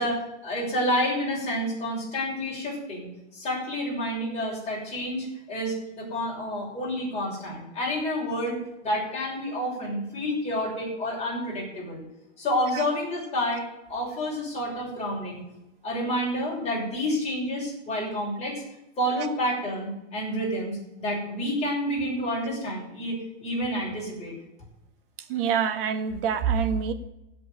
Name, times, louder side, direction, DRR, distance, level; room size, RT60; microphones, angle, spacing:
voice 1, 0.0-12.0 12.4-15.4 15.8-18.6 19.0-24.3, equal, 15° left, -4 dB, 6.4 m, -29 dB
voice 2, 25.3-26.9, right 7 dB, 50° right, 8 dB, 1.7 m, -25 dB
16.0 x 5.4 x 9.8 m, 0.90 s
supercardioid pair, 165°, 36 cm